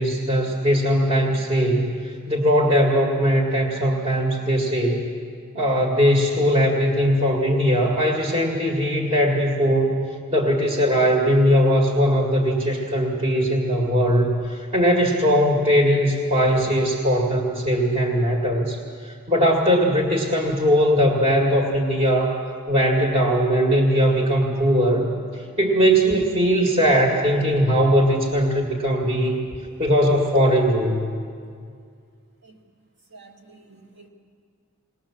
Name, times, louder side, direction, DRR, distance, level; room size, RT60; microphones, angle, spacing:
voice 1, 0.0-1.9 2.3-5.1 5.5-10.0 10.3-18.8 19.1-22.3 22.7-25.1 25.6-29.4 29.8-31.1, equal, 30° right, -1 dB, 2.0 m, -20 dB
voice 2, 33.1-34.1, right 2 dB, 55° right, 2 dB, 2.4 m, -45 dB
21.0 x 19.0 x 7.2 m, 2.2 s
head